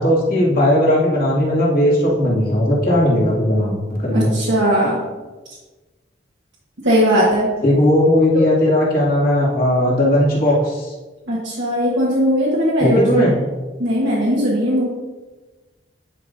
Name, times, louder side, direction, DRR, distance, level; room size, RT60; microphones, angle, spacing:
voice 1, 0.0-4.3 7.6-10.9 12.8-13.4, left 1 dB, 55° left, -6 dB, 2.2 m, -17 dB
voice 2, 4.1-5.0 6.8-7.5 11.3-13.0 13.8-14.8, equal, 90° right, -6 dB, 1.3 m, -18 dB
9.9 x 4.9 x 2.6 m, 1.2 s
head